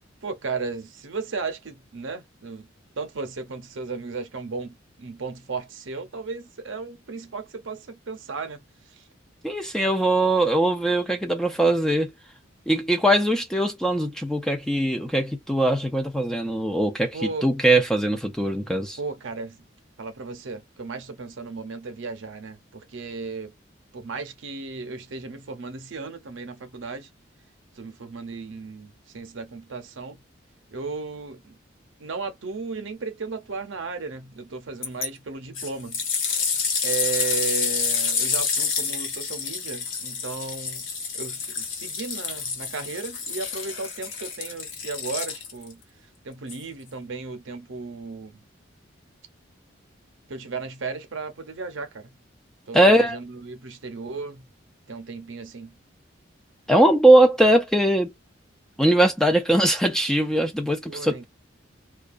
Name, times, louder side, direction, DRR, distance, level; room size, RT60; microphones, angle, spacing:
voice 1, 0.2-2.7 3.0-9.0 17.1-17.5 19.0-19.6 20.0-23.5 23.9-27.1 27.7-30.2 30.7-31.6 32.0-36.0 36.8-40.9 41.1-45.8 46.2-48.4 50.3-52.2 52.7-54.5 54.9-55.8 60.9-61.2, right 4 dB, 80° right, 0.7 m, -35 dB
voice 2, 9.4-12.1 12.7-19.0 52.7-53.2 56.7-58.1 58.8-61.2, right 1 dB, 5° left, 0.4 m, -20 dB
sound 1, 34.8-35.1 35.5-45.7 46.5-46.6, left 5 dB, 85° left, 0.8 m, -28 dB
2.3 x 2.3 x 2.4 m
head